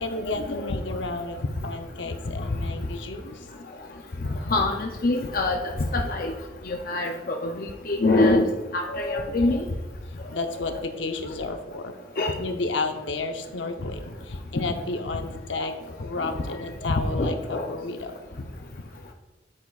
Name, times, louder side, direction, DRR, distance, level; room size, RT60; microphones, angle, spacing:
voice 1, 0.0-3.4 10.3-11.9 12.4-18.2, left 3 dB, 85° left, 6 dB, 0.8 m, -32 dB
voice 2, 4.5-6.3 6.6-8.5 8.7-9.6 10.6-10.7 12.2-12.3 16.2-16.3 16.9-17.7, left 2 dB, 50° left, 2 dB, 0.5 m, -24 dB
8.5 x 8.4 x 2.4 m, 1.1 s
head